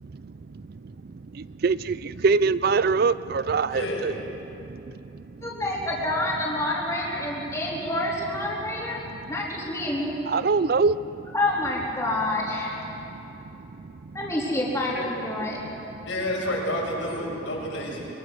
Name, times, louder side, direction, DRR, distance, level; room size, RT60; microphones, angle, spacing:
voice 1, 0.0-4.1 4.5-5.5 9.2-9.3 10.3-11.3 12.9-14.2, right 4 dB, 50° right, 16 dB, 0.4 m, -26 dB
voice 2, 3.7-4.0 14.9-15.1 16.0-18.1, left 1 dB, 80° left, -3 dB, 6.5 m, -29 dB
voice 3, 5.4-9.0 9.3-10.2 11.3-12.7 14.1-15.6, left 1 dB, 15° left, -5 dB, 3.7 m, -28 dB
24.0 x 23.0 x 6.5 m, 3.0 s
head